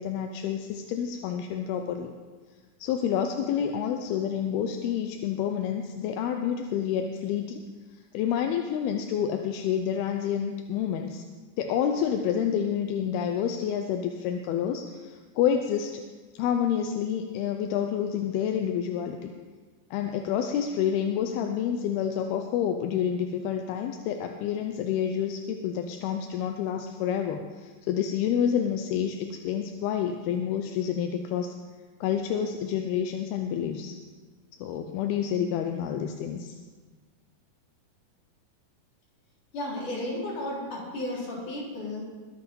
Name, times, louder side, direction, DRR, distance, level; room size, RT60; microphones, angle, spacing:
voice 1, 0.0-2.1 2.8-7.6 8.1-11.2 11.6-16.0 16.3-19.3 19.9-31.5 32.0-33.9 34.6-36.6, left 8 dB, 75° left, 4 dB, 2.4 m, -28 dB
voice 2, 39.5-42.0, left 1 dB, 45° left, -5 dB, 5.1 m, -33 dB
21.5 x 8.2 x 5.4 m, 1.4 s
omnidirectional pair, 5.0 m